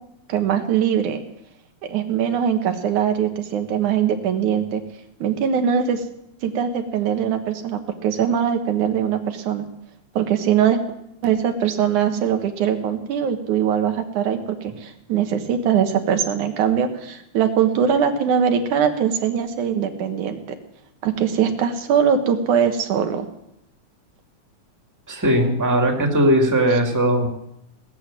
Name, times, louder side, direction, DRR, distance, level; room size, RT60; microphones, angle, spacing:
voice 1, 0.3-1.2 1.9-4.8 5.2-6.1 6.4-9.7 10.2-10.8 11.2-20.4 21.0-23.3, right 8 dB, 90° right, 6 dB, 2.9 m, -21 dB
voice 2, 25.1-27.3, right 1 dB, 10° right, 2 dB, 1.5 m, -18 dB
18.5 x 8.0 x 8.8 m, 0.81 s
omnidirectional pair, 3.4 m